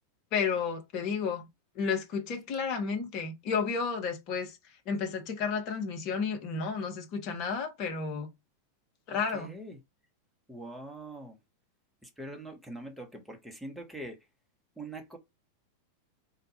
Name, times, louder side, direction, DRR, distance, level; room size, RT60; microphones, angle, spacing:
voice 1, 0.3-1.5 1.8-4.6 4.9-8.3 9.1-9.5, left 5 dB, 40° left, 0.9 m, -32 dB
voice 2, 9.1-9.8 10.5-11.4 12.0-14.2 14.8-15.2, right 1 dB, ahead, 0.9 m, -43 dB
3.9 x 2.2 x 4.1 m
figure-of-eight pair, 90°, 0 cm